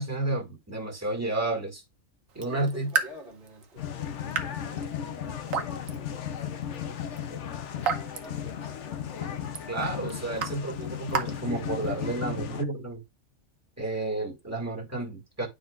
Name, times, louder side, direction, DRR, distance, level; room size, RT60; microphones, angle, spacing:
voice 1, 0.0-1.8 2.3-2.9 9.7-13.0 13.8-15.5, right 2 dB, 10° right, 2.0 m, -31 dB
Raindrop / Drip, 2.3-12.2, right 6 dB, 85° right, 1.4 m, -36 dB
voice 2, 2.5-9.0, equal, 45° right, 1.9 m, -50 dB
sound 1, 3.8-12.6, left 9 dB, 65° left, 1.0 m, -35 dB
9.7 x 5.1 x 2.4 m
omnidirectional pair, 1.4 m